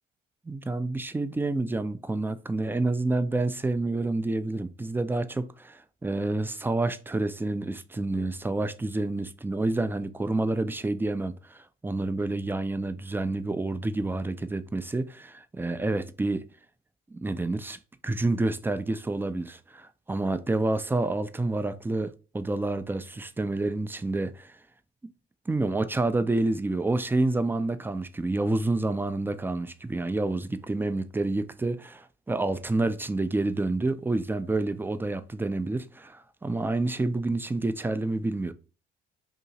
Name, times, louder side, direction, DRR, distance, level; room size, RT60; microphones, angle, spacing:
voice 1, 0.5-16.5 17.1-17.8 18.0-24.5 25.5-38.5, right 2 dB, 10° right, 0.3 m, -28 dB
2.8 x 2.7 x 3.9 m
cardioid pair, 80°, 21 cm